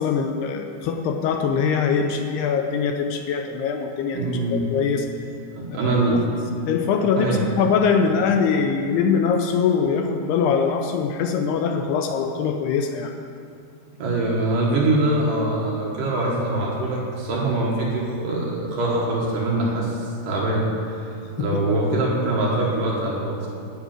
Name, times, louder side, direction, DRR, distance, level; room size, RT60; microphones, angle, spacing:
voice 1, 0.0-5.1 5.7-6.0 6.7-13.1 21.4-21.6, left 6 dB, 80° left, 4 dB, 2.6 m, -22 dB
voice 2, 4.1-4.6 5.5-6.2 7.2-7.4 14.0-23.5, right 2 dB, 60° right, -4 dB, 2.5 m, -23 dB
10.5 x 6.5 x 8.7 m, 2.5 s
omnidirectional pair, 5.0 m